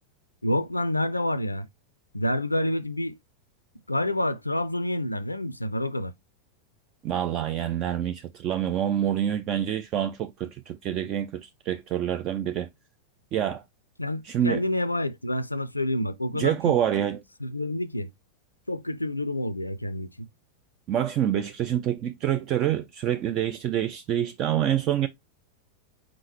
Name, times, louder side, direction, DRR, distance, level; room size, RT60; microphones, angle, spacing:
voice 1, 0.4-1.7 2.1-3.2 3.9-6.1 14.0-16.8 17.4-18.1 18.7-20.3, left 1 dB, 85° left, 0.3 m, -28 dB
voice 2, 7.0-12.7 13.3-13.6 14.2-14.6 16.3-17.2 20.9-25.1, right 10 dB, 35° right, 0.4 m, -27 dB
4.8 x 3.7 x 2.8 m
figure-of-eight pair, 90°, 0 cm